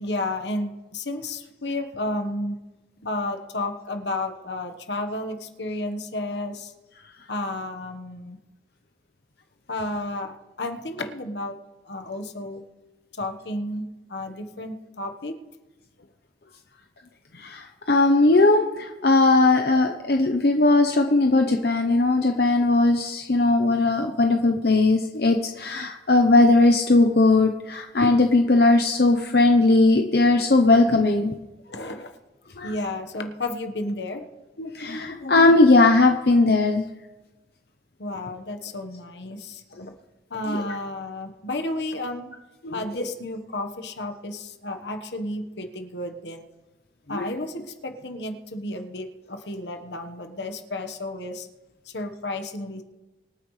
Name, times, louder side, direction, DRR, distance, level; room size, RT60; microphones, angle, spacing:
voice 1, 0.0-2.6 3.0-6.7 7.3-8.4 9.7-11.6 11.8-12.6 13.1-15.4 31.7-32.1 32.6-34.2 38.0-39.9 40.3-42.3 42.7-46.5 47.1-51.5 51.9-52.8, left 1 dB, 75° left, 6 dB, 1.3 m, -32 dB
voice 2, 17.3-31.3 32.6-32.7 34.6-36.8 40.5-40.6 42.6-42.7 47.1-47.3, left 2 dB, 60° left, 4 dB, 0.8 m, -19 dB
25.0 x 9.4 x 3.2 m, 1.1 s
head